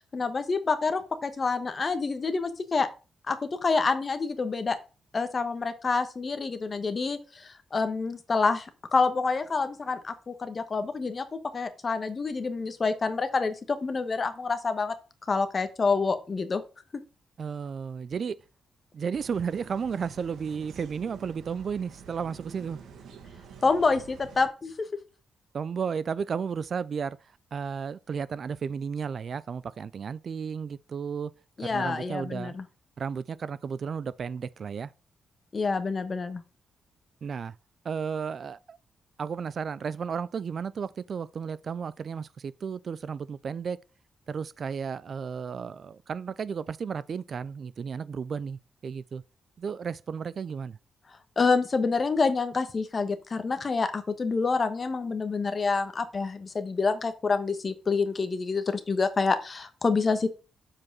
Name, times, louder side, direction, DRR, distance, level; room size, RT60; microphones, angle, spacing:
voice 1, 0.1-2.9 3.3-4.8 5.1-14.9 15.3-16.6 23.6-24.7 31.6-32.6 35.5-36.4 51.4-60.3, left 4 dB, 35° left, 1.2 m, -27 dB
voice 2, 17.4-18.4 18.9-22.8 25.5-27.2 27.5-31.3 31.6-32.6 33.0-34.9 37.2-37.5 37.8-38.8 39.2-43.8 44.3-49.2 49.6-50.8, right 6 dB, 50° right, 0.4 m, -33 dB
sound 1, 19.1-24.5, right 6 dB, 85° right, 1.8 m, -48 dB
7.4 x 4.8 x 6.0 m
cardioid pair, 125°, 0 cm